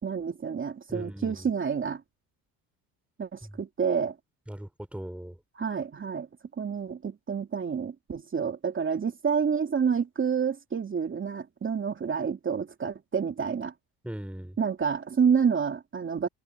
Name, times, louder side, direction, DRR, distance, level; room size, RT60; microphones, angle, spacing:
voice 1, 0.0-2.0 3.2-4.1 5.6-6.3 6.6-13.7 14.6-16.3, right 6 dB, 30° right, 2.9 m, -28 dB
voice 2, 0.9-1.5 3.4-3.5 4.5-5.4 14.0-14.6, right 1 dB, 5° right, 3.6 m, -39 dB
supercardioid pair, 105°, 40 cm